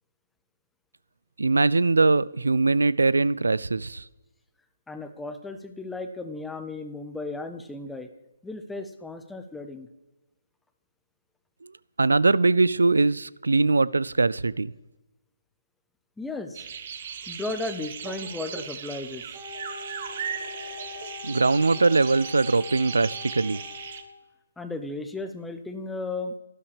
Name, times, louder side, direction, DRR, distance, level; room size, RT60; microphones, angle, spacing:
voice 1, 1.4-4.0 12.0-14.7 21.2-23.6, right 3 dB, 80° right, 20 dB, 0.3 m, -21 dB
voice 2, 4.9-8.1 8.4-9.9 16.2-16.7 17.3-19.2 24.6-26.3, left 3 dB, 5° left, 8 dB, 0.7 m, -35 dB
sound 1, 16.5-24.0, right 7 dB, 45° right, 1.0 m, -37 dB
Wind instrument woodwind instrument, 19.3-24.1, left 6 dB, 15° right, 4.7 m, -42 dB
12.5 x 12.0 x 3.4 m, 1.1 s
figure-of-eight pair, 140°, 0 cm